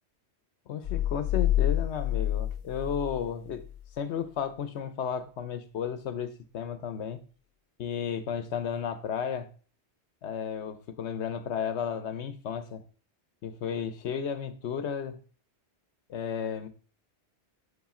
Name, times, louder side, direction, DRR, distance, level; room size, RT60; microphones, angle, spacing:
voice 1, 0.7-3.6 4.0-7.2 7.8-9.5 10.2-12.8 13.4-15.2 16.1-16.7, left 7 dB, 75° left, 1.0 m, -33 dB
sound 1, 0.8-3.8, left 12 dB, 55° left, 0.6 m, -28 dB
7.2 x 6.6 x 3.7 m
omnidirectional pair, 1.2 m